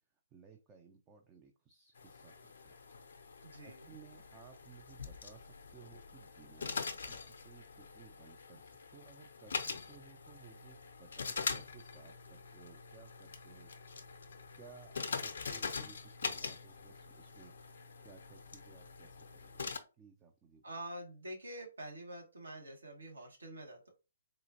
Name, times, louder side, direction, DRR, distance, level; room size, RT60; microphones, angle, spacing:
voice 1, 0.3-2.3 2.6-2.8 3.6-14.0 14.6-19.5 20.0-20.6, right 6 dB, 20° right, 4 dB, 0.4 m, -59 dB
sound 1, 2.0-19.8, left 5 dB, 60° left, 0.6 m, -44 dB
voice 2, 3.4-3.9 20.6-23.9, right 1 dB, 70° right, 1 dB, 1.3 m, -46 dB
3.9 x 2.4 x 2.7 m, 0.30 s
figure-of-eight pair, 130°, 0 cm